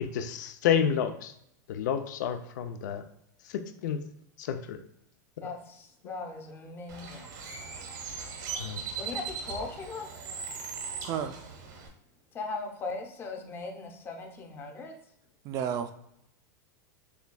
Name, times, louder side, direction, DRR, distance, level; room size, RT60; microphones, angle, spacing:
voice 1, 0.0-1.3 1.7-3.0 3.5-4.0 4.4-4.8 8.6-8.9, left 8 dB, 70° left, 8 dB, 0.5 m, -30 dB
voice 2, 5.4-7.3 9.0-10.1 12.3-15.0, left 3 dB, 20° left, 3 dB, 0.7 m, -39 dB
Bird, 6.9-11.9, right 5 dB, 70° right, 0.9 m, -39 dB
voice 3, 11.0-11.4 15.4-15.9, right 8 dB, 35° right, 9 dB, 0.3 m, -31 dB
6.8 x 2.3 x 2.3 m, 0.75 s
supercardioid pair, 140°, 10 cm